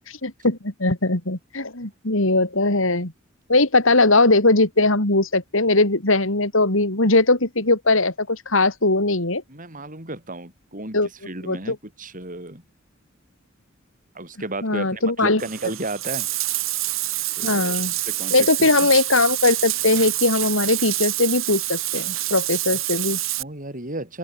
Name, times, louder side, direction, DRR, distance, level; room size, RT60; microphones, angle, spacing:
voice 1, 0.2-3.1 3.5-9.4 10.9-11.1 11.4-11.8 14.6-15.4 17.4-17.9 18.3-23.2, left 2 dB, 75° left, 4.0 m, -20 dB
voice 2, 9.5-12.6 14.1-16.3 17.4-17.8 18.1-18.9 23.4-24.2, right 2 dB, 40° right, 7.9 m, -33 dB
Bathtub (filling or washing), 15.4-23.4, right 16 dB, 80° right, 3.9 m, -27 dB
open air
head